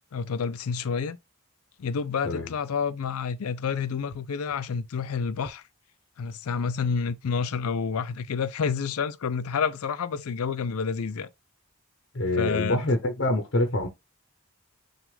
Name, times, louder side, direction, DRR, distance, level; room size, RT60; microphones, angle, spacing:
voice 1, 0.1-1.2 1.8-5.6 6.2-11.3 12.4-12.8, left 6 dB, 85° left, 0.4 m, -29 dB
voice 2, 12.1-13.9, left 1 dB, 55° left, 0.8 m, -25 dB
6.0 x 2.4 x 3.3 m
head